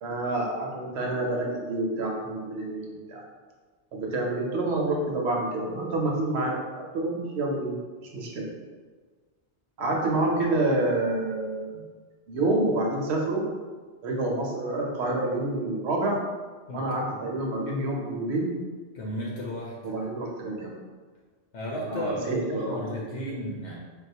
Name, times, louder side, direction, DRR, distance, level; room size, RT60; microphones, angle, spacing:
voice 1, 0.0-3.2 3.9-7.8 8.1-8.4 9.8-11.8 12.3-13.4 14.0-16.2 16.7-18.6 19.8-20.7 21.9-23.0 23.5-23.7, right 2 dB, 75° right, -1 dB, 0.9 m, -28 dB
voice 2, 16.7-17.2 18.9-19.7 21.5-23.7, equal, 80° left, -3 dB, 0.9 m, -34 dB
3.8 x 2.3 x 2.7 m, 1.4 s
omnidirectional pair, 1.2 m